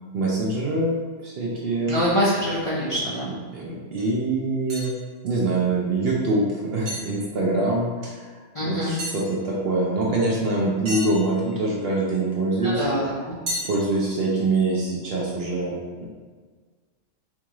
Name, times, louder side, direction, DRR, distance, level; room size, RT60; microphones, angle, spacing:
voice 1, 0.1-1.0 1.2-2.0 3.3-4.9 5.2-8.3 8.6-12.8 13.6-16.0, right 2 dB, 60° right, -3 dB, 0.7 m, -24 dB
voice 2, 1.9-3.3 8.5-9.0 12.6-13.3, equal, 35° left, -9 dB, 0.6 m, -24 dB
sound 1, 3.1-3.2 4.0-4.1 4.7-5.0 6.9-7.1 9.0-9.2 10.9-11.7 13.5-13.9, equal, 40° right, 1.0 m, -32 dB
4.4 x 2.4 x 3.0 m, 1.5 s
omnidirectional pair, 1.3 m